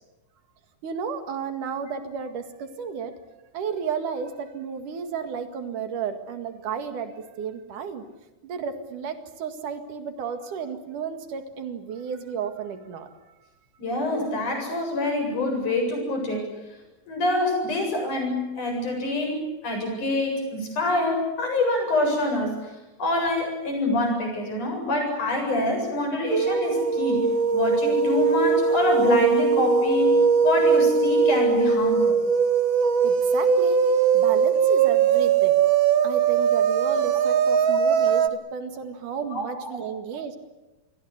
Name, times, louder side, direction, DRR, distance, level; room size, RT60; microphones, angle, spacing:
voice 1, 0.8-3.1 3.5-8.1 8.4-13.1 33.0-33.8 34.1-35.6 36.0-40.4, right 6 dB, 85° right, 7 dB, 3.6 m, -33 dB
voice 2, 13.8-16.5 17.1-27.3 27.5-30.1 30.4-32.2 39.3-39.4, left 1 dB, 75° left, 2 dB, 9.3 m, -26 dB
sound 1, 26.3-38.3, right 6 dB, 55° right, 1.4 m, -20 dB
28.5 x 21.5 x 8.2 m, 1.1 s
omnidirectional pair, 3.5 m